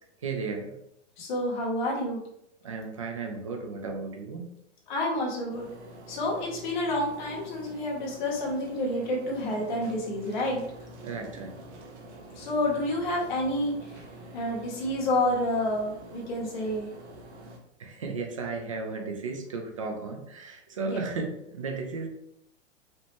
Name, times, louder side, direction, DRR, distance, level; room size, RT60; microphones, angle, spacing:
voice 1, 0.2-0.7 2.6-4.5 11.0-11.6 17.8-22.1, right 4 dB, 30° right, 3 dB, 0.4 m, -34 dB
voice 2, 1.2-2.2 4.9-5.7 6.1-10.6 12.3-14.0 14.3-16.9 20.8-21.0, left 1 dB, 40° left, -4 dB, 1.6 m, -29 dB
sound 1, 5.5-17.6, right 1 dB, 60° right, 1.2 m, -46 dB
5.2 x 2.9 x 3.4 m, 0.77 s
hypercardioid pair, 175°, 37 cm